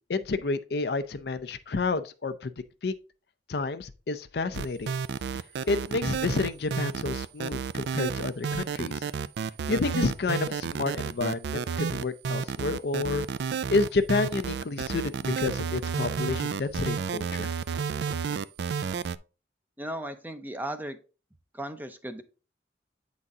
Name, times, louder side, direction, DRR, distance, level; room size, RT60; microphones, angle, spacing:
voice 1, 0.0-2.5 2.8-2.9 3.5-4.9 5.7-9.0 9.7-13.3 13.7-17.5, left 3 dB, 60° left, 0.5 m, -29 dB
sound 1, 4.5-19.2, right 6 dB, 65° right, 0.3 m, -31 dB
voice 2, 19.8-21.0 21.5-22.2, right 1 dB, 10° right, 0.5 m, -36 dB
8.7 x 4.1 x 3.6 m
head